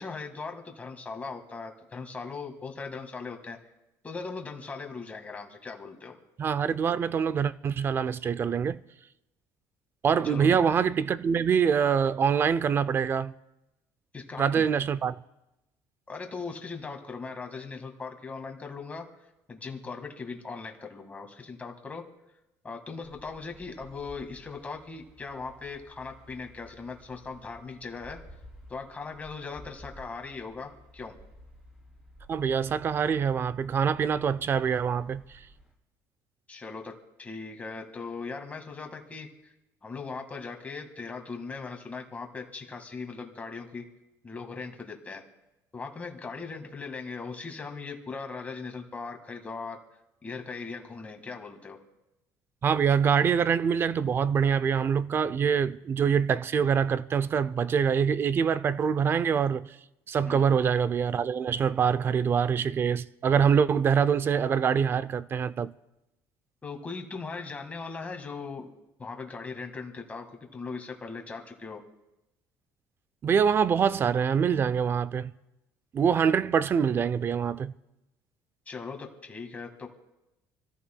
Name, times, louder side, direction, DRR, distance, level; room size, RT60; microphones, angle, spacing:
voice 1, 0.0-3.6 4.0-6.2 10.2-10.6 14.1-14.7 16.1-19.1 19.5-22.0 22.6-28.2 28.7-31.2 36.5-36.9 37.2-39.3 39.8-43.8 44.2-45.2 45.7-49.8 50.2-51.8 60.2-60.4 66.6-68.7 69.0-70.3 70.5-71.8 78.7-79.9, left 4 dB, 20° left, 1.8 m, -39 dB
voice 2, 6.4-8.8 10.0-13.3 14.4-15.1 32.3-35.4 52.6-59.7 60.1-65.7 73.2-75.3 75.9-77.7, right 7 dB, 30° right, 0.4 m, -25 dB
sound 1, 23.0-35.7, equal, 10° right, 5.2 m, -53 dB
28.5 x 14.0 x 2.3 m
cardioid pair, 145°, 8 cm